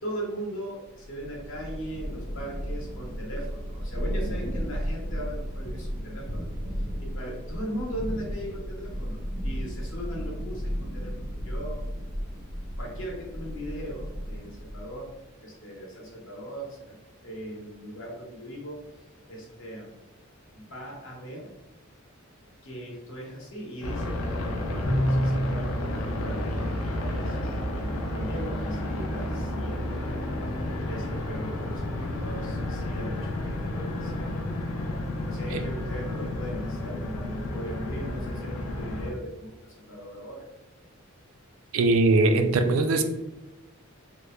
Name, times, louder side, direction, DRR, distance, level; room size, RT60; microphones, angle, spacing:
voice 1, 0.0-6.5 7.0-11.8 12.8-17.0 17.2-18.8 19.3-19.9 20.5-21.5 22.6-30.2 30.9-34.4 35.3-40.5 42.9-43.0, equal, 65° left, -2 dB, 0.8 m, -39 dB
Thunder / Rain, 1.0-15.1, equal, 40° left, 0.9 m, -34 dB
sound 1, 23.8-39.1, left 1 dB, 80° left, 0.4 m, -31 dB
Bowed string instrument, 24.8-25.7, equal, 20° left, 0.5 m, -25 dB
voice 2, 41.7-43.0, right 2 dB, 70° right, 7 dB, 0.3 m, -21 dB
2.9 x 2.1 x 2.2 m, 1.0 s
head